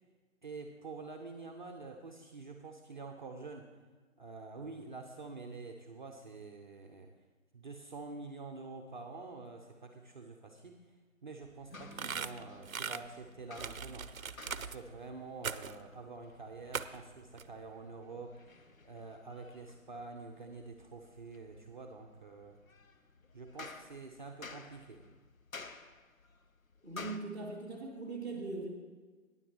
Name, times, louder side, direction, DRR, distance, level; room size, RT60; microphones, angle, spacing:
voice 1, 0.4-3.7 4.2-7.1 7.5-10.8 11.2-14.1 14.6-18.4 18.8-22.6 23.3-25.0, right 3 dB, 35° right, 3 dB, 0.7 m, -47 dB
sound 1, 11.4-27.2, left 4 dB, 90° left, 0.9 m, -54 dB
Strum, 11.7-18.0, equal, 50° left, 1.7 m, -59 dB
sound 2, 11.9-13.0 13.5-14.8 15.4-15.8 16.7-17.1 17.4-17.5, right 6 dB, 85° right, 0.6 m, -39 dB
voice 2, 26.8-28.7, right 3 dB, 5° left, -6 dB, 1.4 m, -40 dB
14.5 x 9.9 x 3.0 m, 1.4 s
figure-of-eight pair, 150°, 40 cm